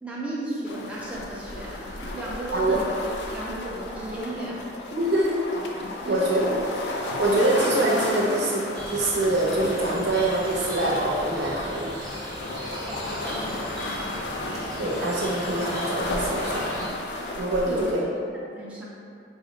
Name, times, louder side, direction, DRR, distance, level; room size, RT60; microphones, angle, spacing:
voice 1, 0.0-2.9 3.3-4.7 6.0-6.7 7.0-7.5 12.8-14.0 17.7-17.9 18.2-18.8, right 1 dB, 5° right, -6 dB, 0.4 m, -35 dB
sound 1, 0.6-17.9, left 1 dB, 70° left, 0.4 m, -33 dB
voice 2, 4.9-5.4 6.0-6.4 7.2-11.9 14.8-16.7 17.4-18.1, right 1 dB, 75° right, -5 dB, 0.7 m, -24 dB
sound 2, 8.7-16.9, right 1 dB, 25° right, 0.8 m, -39 dB
4.1 x 2.0 x 3.7 m, 2.5 s
head